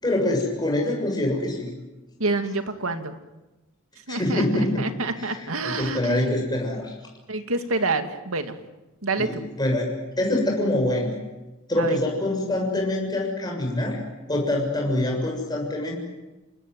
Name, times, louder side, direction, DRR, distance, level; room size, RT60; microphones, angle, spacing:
voice 1, 0.0-1.7 4.1-4.9 5.2-6.9 9.2-11.1 11.7-14.0 14.3-16.0, left 1 dB, 20° left, 0 dB, 6.8 m, -25 dB
voice 2, 2.2-3.2 4.1-4.5 4.8-6.5 7.3-8.6 9.0-9.5 11.8-12.0, right 3 dB, 85° right, 7 dB, 2.3 m, -27 dB
28.0 x 19.5 x 9.5 m, 1.1 s
head